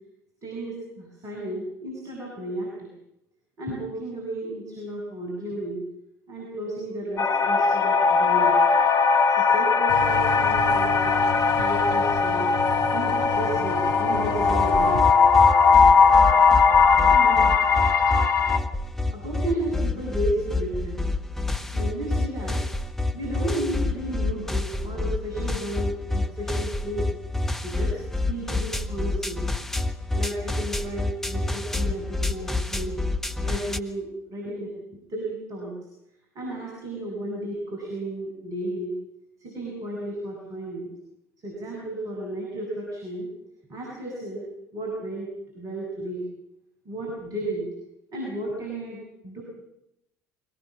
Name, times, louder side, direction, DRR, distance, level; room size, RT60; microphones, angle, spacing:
voice 1, 0.4-2.9 3.6-5.8 6.3-8.6 9.3-11.2 11.5-12.5 12.9-15.0 17.1-17.4 19.1-21.0 21.7-22.6 23.1-27.1 27.6-28.0 28.3-29.4 30.1-33.0 33.4-34.7 35.1-35.8 36.3-39.0 39.4-40.9 41.4-43.3 43.7-44.4 44.7-46.3 46.9-47.7 48.1-49.4, right 1 dB, 40° right, -2 dB, 7.6 m, -33 dB
sound 1, 7.2-18.6, left 5 dB, 35° left, 1.4 m, -19 dB
sound 2, 9.9-15.0, left 1 dB, 65° right, 3.3 m, -32 dB
sound 3, 14.2-33.8, left 2 dB, 5° left, 1.4 m, -28 dB
23.5 x 19.5 x 7.5 m, 0.83 s
figure-of-eight pair, 60°, 9 cm